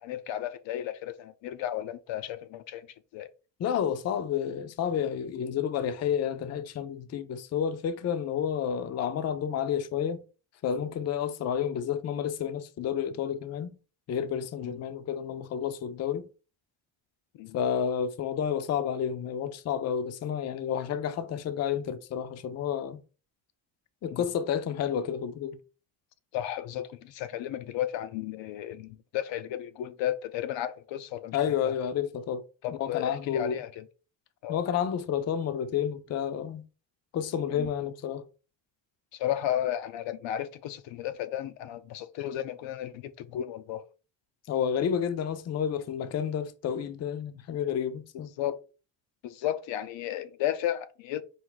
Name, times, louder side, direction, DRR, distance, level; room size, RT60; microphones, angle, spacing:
voice 1, 0.0-2.9 3.1-3.3 14.6-14.8 17.3-17.6 24.1-24.2 26.3-31.7 32.6-33.8 34.4-34.6 37.6-37.7 39.1-43.8 48.4-48.6 49.2-51.2, left 12 dB, 85° left, 0.6 m, -34 dB
voice 2, 3.6-10.2 10.6-13.7 14.1-16.3 17.5-23.0 24.0-25.6 31.3-32.4 32.8-33.6 34.5-36.6 37.1-38.2 44.5-48.3, left 8 dB, 40° left, 0.4 m, -30 dB
4.7 x 2.5 x 3.8 m
cardioid pair, 140°, 44 cm